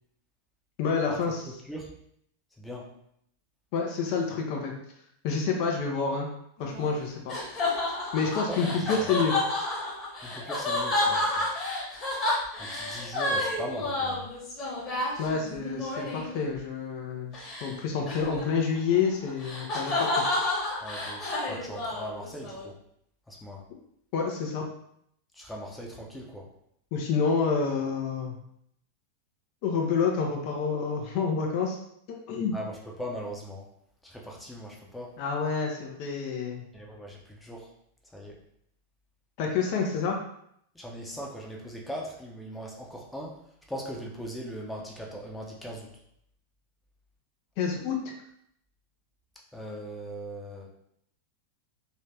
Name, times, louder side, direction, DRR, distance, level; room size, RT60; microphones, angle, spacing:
voice 1, 0.8-1.4 3.7-4.7 5.2-6.3 6.6-7.3 8.1-9.3 15.2-20.2 24.1-24.6 26.9-28.4 29.6-31.8 32.1-32.5 35.2-36.7 39.4-40.2 47.6-48.1, left 5 dB, 45° left, 0 dB, 0.6 m, -28 dB
voice 2, 1.4-1.9 2.6-2.9 8.5-9.1 10.2-11.6 12.6-14.3 20.8-22.7 23.3-23.6 25.3-26.5 32.5-33.7 34.0-35.2 36.7-37.7 38.0-38.4 40.7-43.4 43.7-45.9 49.5-50.7, equal, 5° left, -1 dB, 0.7 m, -39 dB
sound 1, 6.6-16.4 17.3-17.7 18.1-22.6, left 2 dB, 25° left, 1.2 m, -30 dB
3.2 x 2.7 x 3.3 m, 0.72 s
figure-of-eight pair, 90°, 0 cm